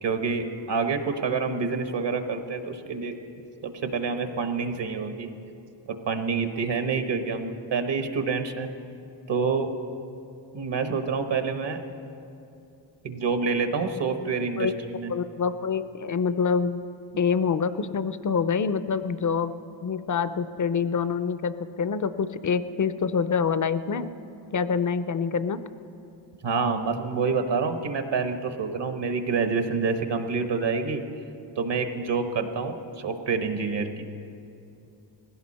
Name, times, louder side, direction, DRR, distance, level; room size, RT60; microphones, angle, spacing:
voice 1, 0.0-3.1 3.6-5.3 5.9-8.7 9.3-9.7 10.5-11.8 13.0-15.1 26.4-31.0 31.6-34.0, right 5 dB, 65° right, 7 dB, 1.1 m, -27 dB
voice 2, 15.1-16.8 17.2-19.5 19.8-24.1 24.5-25.6, left 6 dB, 45° left, 13 dB, 0.5 m, -26 dB
19.5 x 16.5 x 4.2 m, 2.7 s
wide cardioid pair, 145°, 46 cm